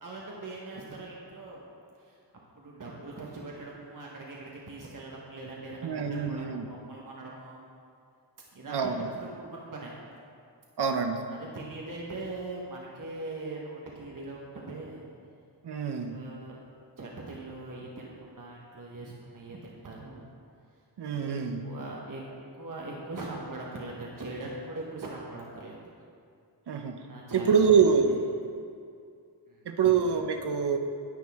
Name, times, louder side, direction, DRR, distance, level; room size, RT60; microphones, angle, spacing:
voice 1, 0.0-1.6 2.0-2.2 2.5-7.6 8.5-9.9 11.3-15.0 16.0-16.6 17.0-20.3 21.1-22.2 22.6-25.8 27.1-28.1 29.5-29.9, right 2 dB, 45° right, -3 dB, 1.1 m, -41 dB
voice 2, 5.8-6.6 8.7-9.1 10.8-11.2 15.6-16.1 21.0-21.6 26.7-27.0 27.3-28.2 29.7-30.8, right 6 dB, 65° right, 6 dB, 0.7 m, -25 dB
10.5 x 8.9 x 3.5 m, 2.3 s
wide cardioid pair, 120°, 43 cm